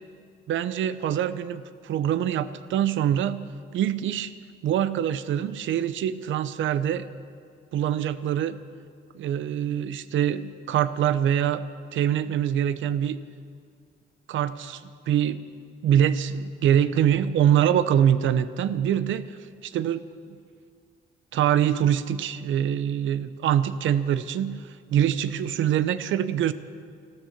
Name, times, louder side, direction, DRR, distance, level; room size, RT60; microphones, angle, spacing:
voice 1, 0.5-3.4 3.7-4.3 4.6-7.1 7.7-8.6 9.1-11.6 11.9-13.2 14.3-15.4 15.8-19.3 19.6-20.1 21.3-26.5, right 10 dB, 75° right, 14 dB, 0.7 m, -24 dB
14.0 x 13.0 x 7.2 m, 2.2 s
cardioid pair, 90°, 20 cm